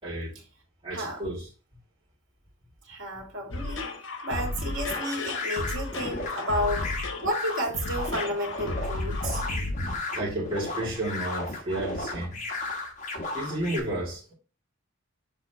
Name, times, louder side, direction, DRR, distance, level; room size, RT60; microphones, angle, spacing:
voice 1, 0.0-0.3 0.8-1.5 10.1-12.4 13.3-14.3, right 1 dB, 25° right, 3.6 m, -32 dB
voice 2, 0.9-1.2 2.9-3.9 4.2-6.9 7.2-9.4, equal, 60° right, 2.6 m, -31 dB
sound 1, 3.5-10.0, left 2 dB, 75° left, 1.1 m, -33 dB
sound 2, 4.9-13.8, left 2 dB, 35° left, 1.4 m, -35 dB
7.3 x 4.8 x 3.2 m
head